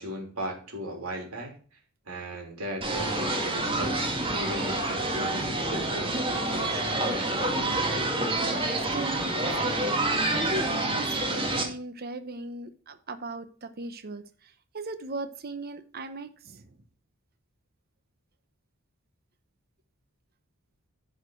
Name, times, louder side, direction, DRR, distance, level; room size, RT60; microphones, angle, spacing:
voice 1, 0.0-1.5 2.1-7.5, right 1 dB, 85° right, 1 dB, 3.2 m, -37 dB
sound 1, 2.8-11.6, right 2 dB, 25° right, 2.2 m, -28 dB
voice 2, 8.4-10.0 10.3-16.7, right 2 dB, 45° right, 10 dB, 0.9 m, -38 dB
11.0 x 4.9 x 6.3 m, 0.40 s
head